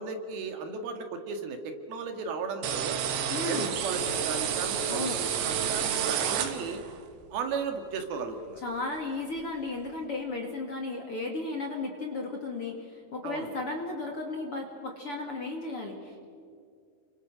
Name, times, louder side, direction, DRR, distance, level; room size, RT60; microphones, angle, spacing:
voice 1, 0.0-3.0 3.5-6.8 7.3-8.6 13.2-13.5, right 5 dB, 65° right, 6 dB, 3.6 m, -35 dB
sound 1, 2.6-7.0, right 8 dB, 85° right, 3.9 m, -30 dB
voice 2, 3.3-3.7 4.9-5.2 8.6-16.2, left 3 dB, 40° left, 2 dB, 2.4 m, -35 dB
30.0 x 25.0 x 6.3 m, 2.3 s
omnidirectional pair, 4.9 m